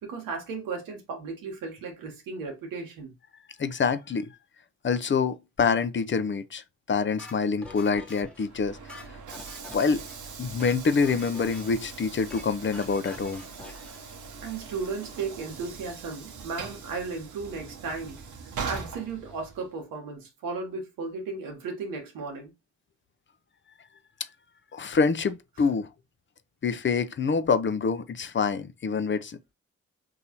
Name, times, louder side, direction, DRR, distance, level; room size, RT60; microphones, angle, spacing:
voice 1, 0.0-3.1 14.4-18.2 18.6-22.5, right 4 dB, 85° right, 1.1 m, -35 dB
voice 2, 3.6-4.4 4.8-8.8 9.7-10.0 10.4-13.4 24.7-25.9 26.6-29.5, left 5 dB, 35° left, 0.6 m, -26 dB
sound 1, 7.2-8.5 8.8-10.2 10.4-10.8 11.0-11.9 12.1-12.5 12.7-14.0, left 1 dB, 5° left, 1.2 m, -46 dB
Train / Sliding door, 8.3-19.8, right 5 dB, 60° right, 0.9 m, -41 dB
3.9 x 2.9 x 2.8 m
supercardioid pair, 40°, 33 cm